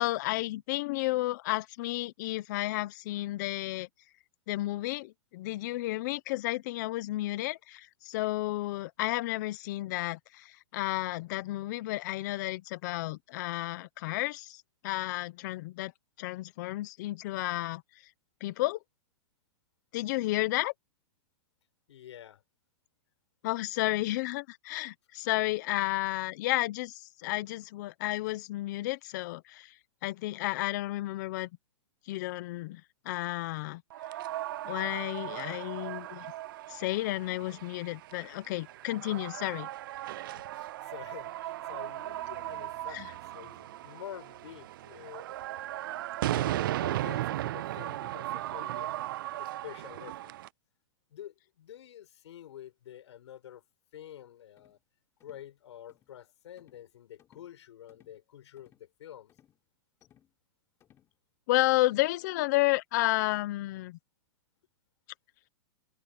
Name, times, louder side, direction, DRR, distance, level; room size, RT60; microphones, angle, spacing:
voice 1, 0.0-3.9 4.5-15.9 16.2-17.8 18.4-18.8 19.9-20.7 23.4-29.7 30.0-31.5 32.1-33.8 34.6-36.3 36.7-39.7 42.9-43.1 61.5-64.0, left 18 dB, 35° left, 1.0 m, -32 dB
voice 2, 21.9-22.4 40.4-45.3 46.3-50.3 51.1-53.6 53.9-54.8 55.2-59.3, left 11 dB, 65° left, 6.4 m, -48 dB
sound 1, 33.9-50.5, right 14 dB, 45° right, 0.4 m, -37 dB
sound 2, 54.6-54.8 55.2-55.5 55.9-56.1 56.6-56.9 57.2-57.5 57.9-58.2 58.6-58.9 59.3-59.6 60.0-60.3 60.8-61.1, left 10 dB, 15° left, 3.9 m, -65 dB
hypercardioid pair, 165°, 16 cm